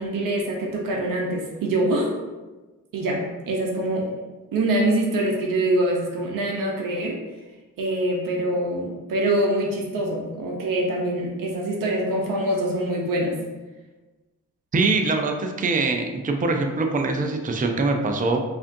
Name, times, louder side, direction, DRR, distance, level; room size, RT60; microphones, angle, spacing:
voice 1, 0.0-2.1 2.9-4.1 4.5-7.2 7.8-13.4, right 1 dB, 70° right, -1 dB, 0.8 m, -24 dB
voice 2, 14.7-18.4, right 3 dB, 25° right, 4 dB, 0.5 m, -23 dB
4.8 x 2.6 x 2.6 m, 1.2 s
cardioid pair, 65°, 35 cm